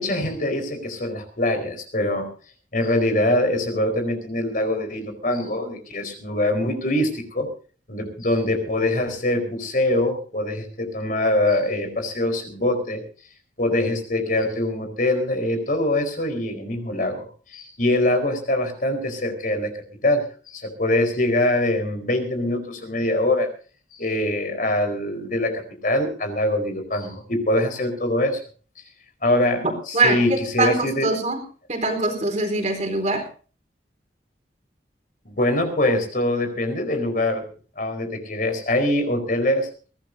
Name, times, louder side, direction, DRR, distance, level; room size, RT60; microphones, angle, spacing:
voice 1, 0.0-2.3 2.7-7.5 7.9-13.0 13.6-17.2 17.5-19.7 20.0-23.5 23.9-28.4 29.2-31.1 35.2-37.4 37.8-39.7, left 1 dB, 50° left, 6 dB, 4.6 m, -23 dB
voice 2, 29.6-31.4 31.7-33.2, right 2 dB, 40° right, 3 dB, 4.1 m, -23 dB
22.5 x 17.0 x 2.7 m, 0.38 s
head